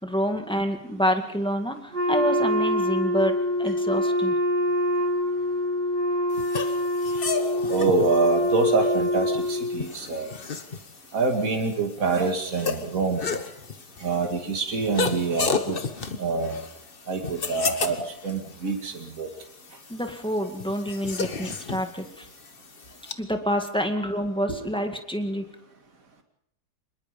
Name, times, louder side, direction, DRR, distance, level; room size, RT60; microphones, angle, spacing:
voice 1, 0.0-4.4 19.9-22.3 23.2-25.5, equal, 5° left, 5 dB, 2.0 m, -27 dB
Wind instrument woodwind instrument, 1.9-9.9, left 1 dB, 30° right, 6.1 m, -25 dB
sound 1, 6.3-23.1, left 5 dB, 35° left, 1.3 m, -33 dB
voice 2, 7.7-10.3 11.1-13.2 14.0-15.8 16.2-16.5 17.1-18.0 18.2-19.3 24.5-24.6, right 4 dB, 55° right, 3 dB, 2.8 m, -25 dB
25.0 x 21.0 x 5.3 m, 0.73 s
omnidirectional pair, 1.8 m